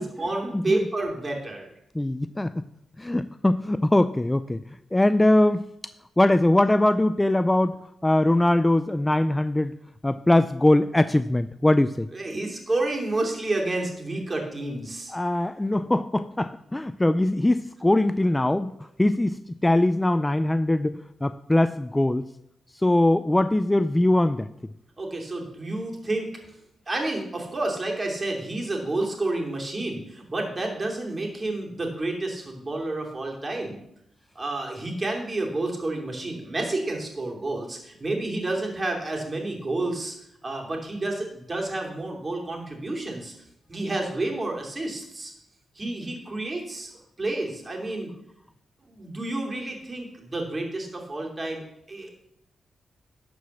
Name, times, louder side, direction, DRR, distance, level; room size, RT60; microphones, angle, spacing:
voice 1, 0.0-1.7 12.1-15.1 25.0-26.6 26.9-33.8 34.3-40.1 40.4-43.3 43.7-45.3 45.7-46.9 47.2-48.1 48.9-52.1, right 2 dB, 30° right, 0 dB, 2.9 m, -30 dB
voice 2, 0.5-0.8 2.0-2.6 3.0-4.6 4.9-5.7 6.2-9.7 10.0-12.1 15.1-22.3 22.8-24.5, left 1 dB, 15° left, 12 dB, 0.3 m, -22 dB
12.0 x 4.8 x 7.0 m, 0.79 s
cardioid pair, 95°, 0 cm